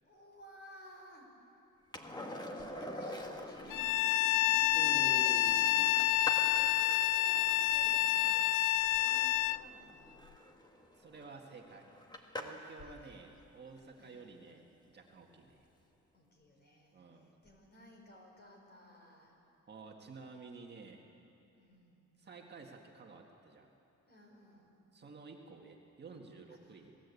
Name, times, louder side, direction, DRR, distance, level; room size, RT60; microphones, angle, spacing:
voice 1, 0.0-1.3 2.6-3.9 4.7-10.1 12.8-13.2 14.0-14.3 16.1-19.4 21.5-22.1 24.1-24.8 26.6-26.8, left 1 dB, 35° left, 1 dB, 4.9 m, -57 dB
Skateboard, 1.9-12.8 15.4-15.5, left 1 dB, 15° left, 1.8 m, -47 dB
Bowed string instrument, 3.7-9.6, left 17 dB, 75° left, 0.5 m, -28 dB
voice 2, 4.7-6.1 11.0-11.9 12.3-15.6 16.9-17.3 19.7-21.0 22.2-23.7 24.9-27.0, right 4 dB, 35° right, 1 dB, 1.8 m, -51 dB
27.5 x 18.5 x 8.4 m, 2.8 s
cardioid pair, 150°, 31 cm